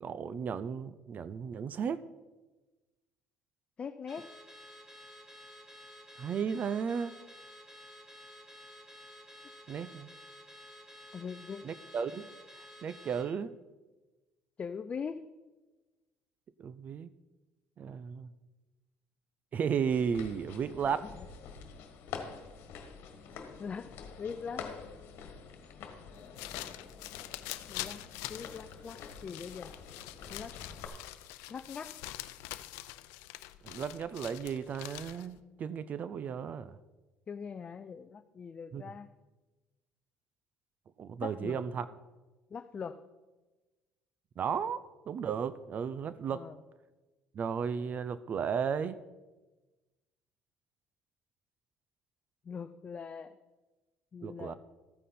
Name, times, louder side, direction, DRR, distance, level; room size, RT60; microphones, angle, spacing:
voice 1, 0.0-2.0 6.2-7.2 9.7-10.1 11.6-12.3 12.8-13.5 16.6-17.1 17.8-18.3 19.5-21.0 33.6-36.8 38.7-38.8 41.0-41.9 44.4-46.5 47.3-49.0 54.2-54.5, right 7 dB, 40° right, 16 dB, 0.5 m, -34 dB
voice 2, 3.8-4.3 11.1-11.7 14.6-15.3 20.9-21.3 23.6-24.7 27.7-29.7 30.3-30.6 31.5-32.0 37.3-39.1 41.2-41.6 42.5-43.0 46.2-46.6 52.4-53.4 54.1-54.5, left 6 dB, 30° left, 10 dB, 0.5 m, -42 dB
Car / Alarm, 4.1-13.3, left 1 dB, 10° right, 1.7 m, -52 dB
sound 1, 19.9-30.9, left 6 dB, 65° left, 1.6 m, -47 dB
sound 2, 26.1-35.4, left 16 dB, 90° left, 0.6 m, -45 dB
14.0 x 9.2 x 4.3 m, 1.2 s
cardioid pair, 120°, 4 cm